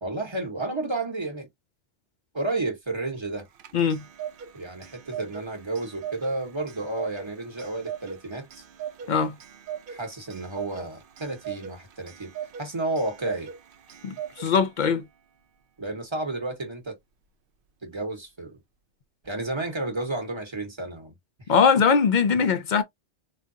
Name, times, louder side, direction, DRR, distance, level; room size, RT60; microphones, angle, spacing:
voice 1, 0.0-1.5 2.3-3.5 4.5-8.6 9.9-12.3 12.6-13.5 15.8-17.0 17.8-18.6 19.2-21.1, right 2 dB, 25° right, 1.0 m, -31 dB
Clock, 3.3-15.0, right 9 dB, 60° right, 0.7 m, -40 dB
voice 2, 3.7-4.0 9.1-9.3 14.0-15.0 21.5-22.8, left 6 dB, 60° left, 0.5 m, -21 dB
3.6 x 2.2 x 2.6 m
omnidirectional pair, 1.2 m